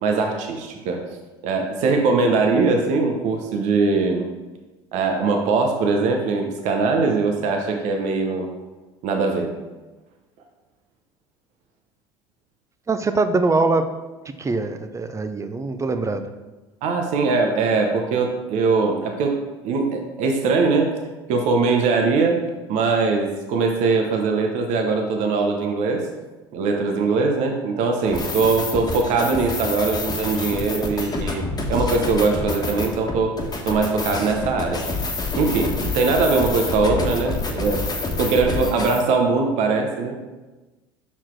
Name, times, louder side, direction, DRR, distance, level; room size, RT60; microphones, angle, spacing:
voice 1, 0.0-1.0 1.4-4.3 4.9-8.5 9.0-9.5 16.8-19.3 19.6-21.0 21.3-22.4 22.7-26.1 26.5-31.4 31.7-33.4 33.6-34.8 35.4-37.9 38.2-40.2, right 4 dB, 65° right, 3 dB, 0.9 m, -21 dB
voice 2, 12.9-13.9 14.4-16.3, right 3 dB, 20° right, 9 dB, 0.6 m, -22 dB
sound 1, 28.1-39.0, left 3 dB, 30° left, 1.4 m, -27 dB
6.0 x 4.4 x 4.6 m, 1.2 s
hypercardioid pair, 70°, 13 cm